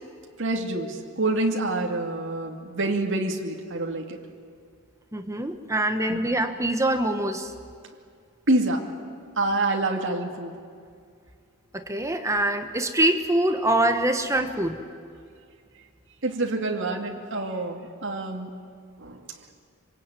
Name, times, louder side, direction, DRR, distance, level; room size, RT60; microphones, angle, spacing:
voice 1, 0.4-4.2 6.1-6.2 8.5-8.9 9.4-10.5 16.2-18.5 19.0-19.2, right 2 dB, 60° right, 1 dB, 2.5 m, -27 dB
voice 2, 5.1-7.5 11.7-14.8, right 1 dB, 15° right, 6 dB, 1.3 m, -24 dB
26.0 x 24.5 x 9.2 m, 2.2 s
head